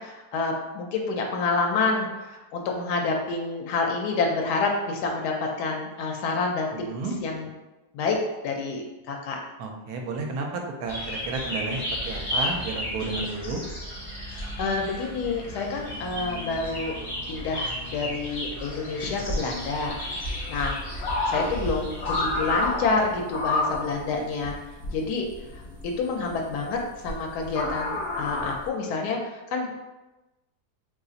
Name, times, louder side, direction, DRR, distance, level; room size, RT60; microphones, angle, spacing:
voice 1, 0.0-6.7 7.2-7.5 7.9-8.2 8.4-9.4 14.3-17.0 17.3-24.6 24.9-25.3 25.5-29.8, left 3 dB, 90° left, 1 dB, 1.1 m, -28 dB
voice 2, 6.7-7.1 9.6-13.6, right 3 dB, 75° right, 2 dB, 1.0 m, -32 dB
sound 1, 10.9-22.7, left 1 dB, 30° left, 0.9 m, -34 dB
sound 2, 19.0-28.7, left 2 dB, 55° left, 0.7 m, -31 dB
2.8 x 2.4 x 3.8 m, 1.1 s
omnidirectional pair, 1.7 m